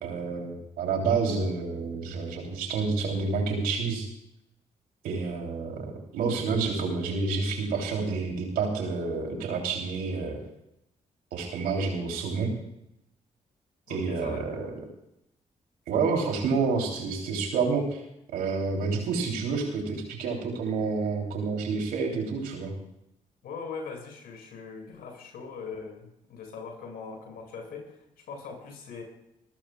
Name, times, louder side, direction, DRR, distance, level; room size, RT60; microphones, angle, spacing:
voice 1, 0.0-4.1 5.0-10.4 11.3-12.5 13.9-14.7 15.9-18.0 18.3-22.7, right 4 dB, 90° right, 2 dB, 3.2 m, -29 dB
voice 2, 13.9-14.4 23.4-29.0, left 5 dB, 85° left, 2 dB, 5.4 m, -41 dB
26.5 x 14.0 x 2.3 m, 0.82 s
supercardioid pair, 55°, 15 cm